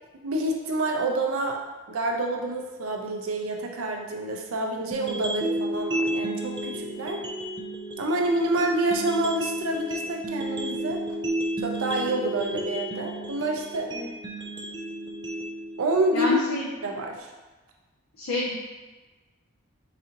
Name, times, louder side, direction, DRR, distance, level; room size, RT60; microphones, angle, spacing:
voice 1, 0.1-1.6 1.9-7.2 8.0-11.0 11.6-13.9 15.8-16.4 16.8-17.3, right 1 dB, 75° right, 1 dB, 0.5 m, -27 dB
sound 1, 4.9-16.9, right 1 dB, 20° right, 0.3 m, -32 dB
voice 2, 16.1-16.7 18.2-18.5, equal, 75° left, -6 dB, 0.6 m, -28 dB
4.0 x 2.5 x 2.8 m, 1.3 s
head